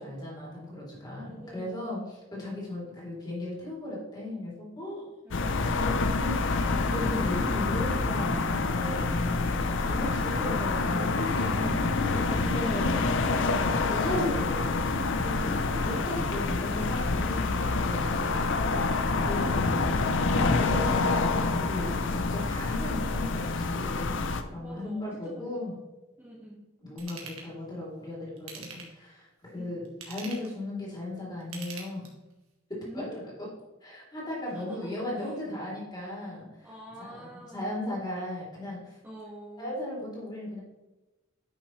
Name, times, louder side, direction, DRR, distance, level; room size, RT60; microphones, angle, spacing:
voice 1, 0.0-5.1 5.8-13.0 13.5-18.4 19.2-20.0 20.5-25.7 26.8-32.0 32.7-33.1 33.4-33.5 33.8-36.7 37.0-39.0 39.6-40.6, left 1 dB, 20° left, -5 dB, 3.0 m, -36 dB
voice 2, 1.1-2.1 5.2-5.9 9.8-10.7 12.2-14.4 15.3-16.4 18.1-18.8 22.0-22.3 24.6-25.8 26.2-26.6 29.5-29.7 32.8-33.2 34.4-35.3 36.6-37.7 39.0-39.8, right 1 dB, 10° right, -6 dB, 1.5 m, -45 dB
sound 1, 5.3-24.4, left 3 dB, 60° left, 0.6 m, -27 dB
Ratchet pawl / Tools, 27.0-27.5 28.4-29.1 29.8-30.6 31.4-32.3 32.8-32.9, right 5 dB, 85° right, 1.7 m, -43 dB
10.0 x 5.9 x 3.2 m, 1.1 s
head